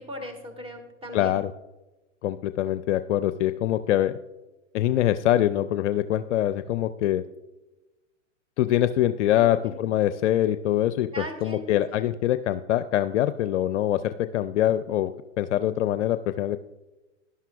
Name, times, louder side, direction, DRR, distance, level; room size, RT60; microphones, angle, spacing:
voice 1, 0.0-1.4 9.3-9.8 11.1-12.1, equal, 15° right, 5 dB, 1.7 m, -39 dB
voice 2, 1.1-1.5 2.2-4.1 4.7-7.2 8.6-15.1 15.4-16.6, left 12 dB, 65° left, 12 dB, 0.5 m, -24 dB
11.5 x 11.0 x 2.3 m, 1.1 s
hypercardioid pair, 105°, 38 cm